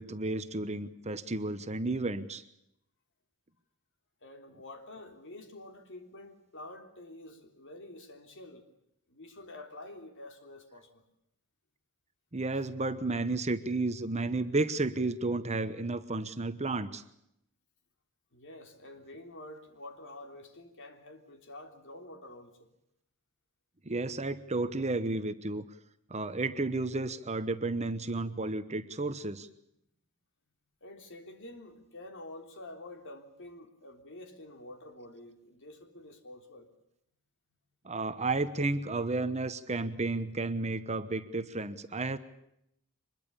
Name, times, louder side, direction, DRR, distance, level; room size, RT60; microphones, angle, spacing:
voice 1, 0.0-2.4 12.3-17.0 23.8-25.6 26.1-29.5 37.8-42.2, right 2 dB, 30° right, 1.1 m, -32 dB
voice 2, 4.2-8.7 9.1-11.0 18.3-22.7 30.8-36.7, left 1 dB, 60° left, 3.4 m, -48 dB
24.5 x 21.5 x 7.0 m
head